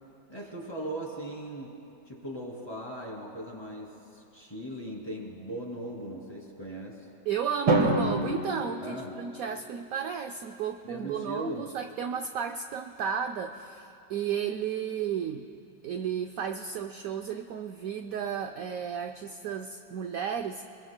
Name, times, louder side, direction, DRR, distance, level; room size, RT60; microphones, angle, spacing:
voice 1, 0.3-7.1 8.8-9.2 10.8-11.7, right 1 dB, 15° left, -2 dB, 2.4 m, -39 dB
voice 2, 7.3-15.5 15.8-20.6, right 8 dB, 65° right, 5 dB, 0.9 m, -33 dB
Drum, 7.7-9.8, right 1 dB, 85° right, 2.5 m, -28 dB
27.5 x 21.5 x 2.2 m, 2.7 s
omnidirectional pair, 1.9 m